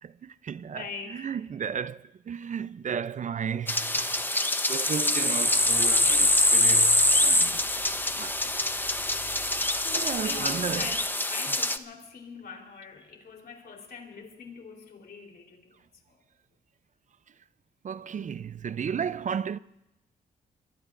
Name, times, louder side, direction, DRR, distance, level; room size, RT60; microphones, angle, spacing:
voice 1, 0.0-0.8 1.1-4.3 4.7-7.9 8.2-8.9 9.9-10.9 17.8-19.6, right 7 dB, 45° right, 0.5 m, -34 dB
voice 2, 0.7-1.3 9.8-16.2, left 5 dB, 65° left, 3.7 m, -43 dB
sound 1, 3.7-11.8, left 1 dB, 10° left, 0.9 m, -24 dB
sound 2, 5.2-11.1, right 4 dB, 85° right, 3.4 m, -50 dB
24.0 x 21.0 x 2.6 m
cardioid pair, 75°, 17 cm